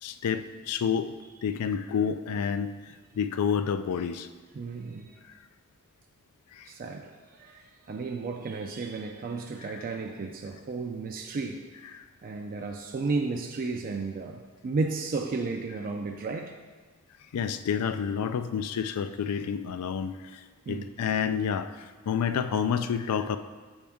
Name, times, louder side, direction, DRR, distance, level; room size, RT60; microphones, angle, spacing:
voice 1, 0.0-1.1 1.4-2.7 3.2-4.3 6.5-6.7 9.7-9.8 11.9-12.0 17.3-23.4, left 7 dB, 85° left, 11 dB, 0.4 m, -29 dB
voice 2, 4.5-5.2 6.7-11.6 12.2-16.6 20.7-20.9, right 3 dB, 40° right, 3 dB, 0.4 m, -33 dB
7.1 x 5.2 x 3.5 m, 1.4 s
head